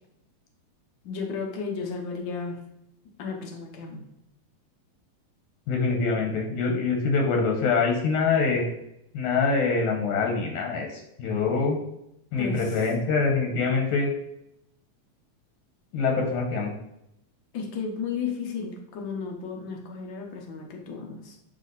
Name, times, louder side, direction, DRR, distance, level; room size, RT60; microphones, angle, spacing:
voice 1, 1.0-2.6 3.2-4.0 12.4-12.8 17.5-21.4, left 5 dB, 70° left, 1 dB, 1.1 m, -34 dB
voice 2, 5.7-8.6 9.1-11.8 12.3-14.1 15.9-16.7, left 4 dB, 85° left, 1 dB, 2.5 m, -24 dB
8.3 x 3.3 x 4.0 m, 0.81 s
omnidirectional pair, 3.4 m